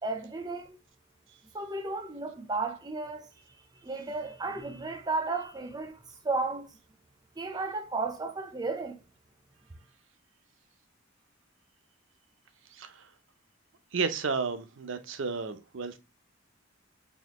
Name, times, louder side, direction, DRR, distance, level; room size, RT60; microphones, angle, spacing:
voice 1, 0.0-0.8 1.5-3.4 3.8-6.7 7.4-9.0, right 3 dB, 20° right, 0.6 m, -34 dB
voice 2, 13.9-16.0, right 4 dB, 65° right, 0.6 m, -32 dB
4.1 x 2.8 x 2.9 m
head